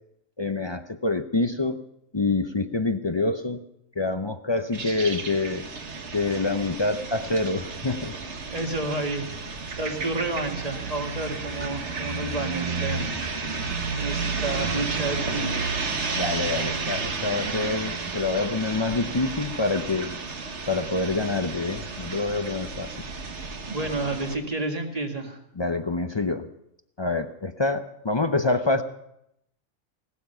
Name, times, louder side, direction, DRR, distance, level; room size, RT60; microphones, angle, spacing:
voice 1, 0.4-1.8 2.1-3.6 4.0-5.7 6.1-8.2 16.2-20.2 20.7-23.0 25.6-26.5 27.0-28.8, left 3 dB, 40° left, 8 dB, 0.3 m, -26 dB
sound 1, 4.7-24.3, right 4 dB, 55° right, 1.6 m, -32 dB
voice 2, 8.5-9.5 9.8-13.1 13.9-16.0 23.7-25.4, right 2 dB, 25° right, 3 dB, 2.1 m, -30 dB
17.5 x 12.5 x 5.7 m, 0.79 s
omnidirectional pair, 1.5 m